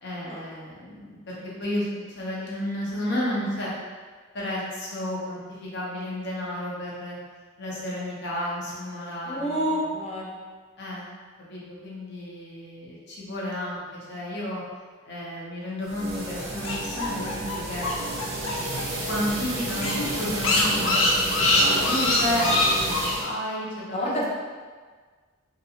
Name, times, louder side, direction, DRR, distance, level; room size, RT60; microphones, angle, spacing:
voice 1, 0.0-3.7 4.3-7.2 7.6-9.8 10.8-11.0 11.5-13.8 14.1-14.6 15.1-17.9 19.1-24.3, left 1 dB, 60° left, -5 dB, 0.8 m, -32 dB
voice 2, 9.3-10.5 23.9-24.3, equal, 35° left, -3 dB, 0.5 m, -28 dB
sound 1, 15.8-23.3, right 1 dB, 75° right, 0.7 m, -31 dB
sound 2, 16.4-18.8 19.1-19.2 19.5-19.6 19.8-23.1, left 2 dB, 85° left, 0.6 m, -24 dB
3.0 x 2.7 x 2.7 m, 1.5 s
head